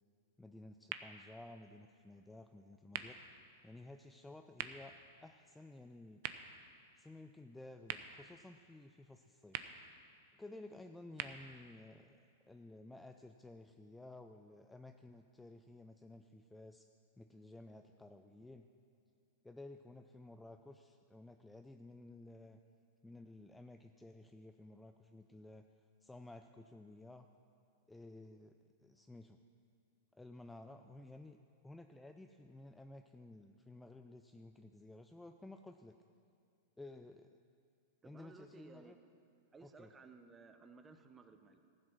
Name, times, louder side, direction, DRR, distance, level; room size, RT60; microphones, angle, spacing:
voice 1, 0.4-3.2 3.6-4.9 5.2-6.2 7.0-9.6 10.3-16.9 17.2-18.7 19.4-22.6 23.0-25.7 26.0-27.3 27.9-29.4 30.1-31.4 31.6-36.0 36.8-37.3 38.0-39.0 39.6-39.9, left 2 dB, 5° left, 6 dB, 0.4 m, -54 dB
sound 1, 0.8-12.8, right 10 dB, 60° right, 0.6 m, -51 dB
voice 2, 38.0-39.0 39.5-41.6, right 4 dB, 15° right, 8 dB, 0.8 m, -58 dB
14.5 x 7.7 x 6.2 m, 2.4 s
hypercardioid pair, 130°, 0 cm